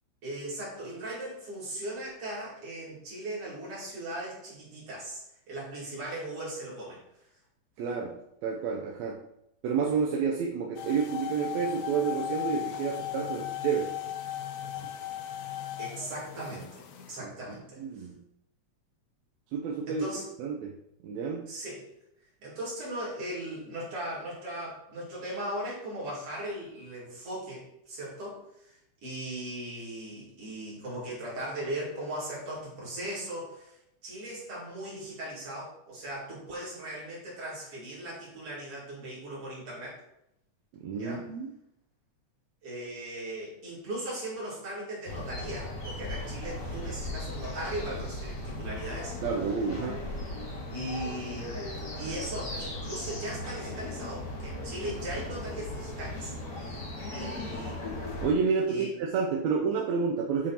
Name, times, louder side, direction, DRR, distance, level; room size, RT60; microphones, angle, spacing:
voice 1, 0.2-5.2 5.5-7.0 15.8-18.1 19.9-20.2 21.5-21.9 22.4-40.0 40.9-41.2 42.6-49.2 50.7-51.6 51.9-56.3 56.6-56.8 57.1-57.8 58.7-58.9, right 1 dB, 50° right, -7 dB, 3.5 m, -38 dB
voice 2, 7.8-9.2 9.6-14.0 17.2-17.3 17.8-18.2 19.5-20.1 20.4-20.8 21.0-21.5 40.8-41.5 49.2-50.0 58.2-60.5, right 5 dB, 75° right, 0 dB, 1.8 m, -30 dB
sound 1, 10.8-17.2, left 12 dB, 85° left, 2.1 m, -37 dB
sound 2, 45.1-58.3, left 1 dB, 35° left, 1.5 m, -37 dB
7.6 x 3.7 x 4.2 m, 0.79 s
omnidirectional pair, 3.5 m